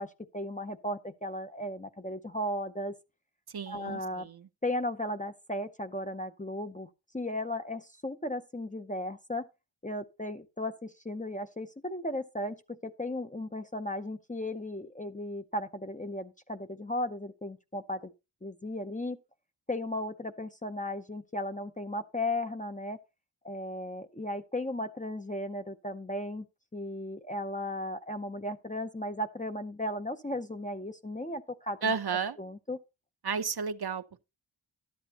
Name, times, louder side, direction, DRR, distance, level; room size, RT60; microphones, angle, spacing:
voice 1, 0.0-3.0 3.7-4.3 4.6-6.9 7.1-9.5 9.8-18.1 18.4-19.2 19.7-23.0 23.4-26.5 26.7-31.9 32.4-32.8, left 1 dB, 15° left, 0.6 m, -36 dB
voice 2, 3.5-4.5 31.8-32.4 33.2-34.2, right 5 dB, 50° right, 0.8 m, -32 dB
12.0 x 8.4 x 2.9 m
wide cardioid pair, 105°, 50 cm